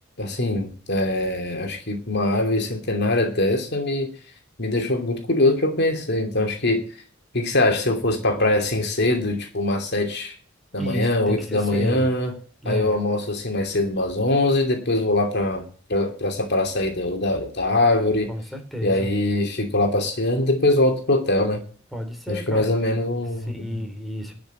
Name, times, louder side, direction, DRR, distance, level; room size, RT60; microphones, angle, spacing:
voice 1, 0.2-4.1 4.6-6.8 7.3-10.3 10.7-12.3 12.7-18.3 18.8-21.6 22.3-23.8, left 2 dB, 55° left, 5 dB, 2.7 m, -22 dB
voice 2, 10.8-12.1 12.6-13.0 18.3-19.1 21.9-22.7 23.5-24.4, left 1 dB, ahead, 3 dB, 3.4 m, -31 dB
12.0 x 6.2 x 9.2 m, 0.41 s
head